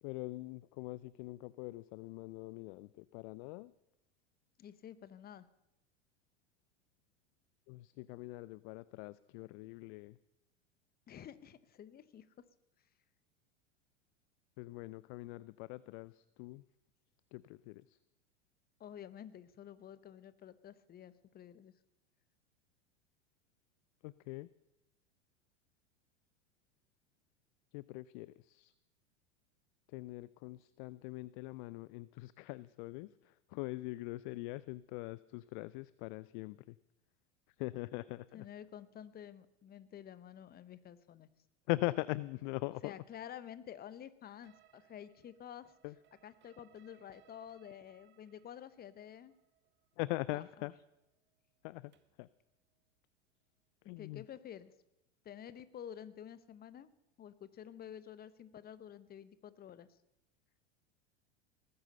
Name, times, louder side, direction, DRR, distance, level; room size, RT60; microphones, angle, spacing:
voice 1, 0.0-3.7 7.7-10.2 14.6-16.7 17.3-18.0 24.0-24.5 27.7-28.7 29.9-36.8 37.5-38.5 41.7-42.9 45.8-46.0 50.0-50.7 51.6-52.3 53.8-54.2, left 20 dB, 45° left, 19 dB, 0.4 m, -42 dB
voice 2, 4.6-5.5 11.1-12.3 18.8-21.7 38.3-41.3 42.8-45.7 46.2-49.3 50.3-50.4 54.0-54.7 55.2-56.9 57.2-59.9, left 9 dB, 25° left, 15 dB, 1.0 m, -50 dB
sound 1, 44.4-52.3, right 13 dB, 30° right, 1.1 m, -69 dB
19.0 x 9.8 x 6.6 m, 0.87 s
figure-of-eight pair, 90°, 36 cm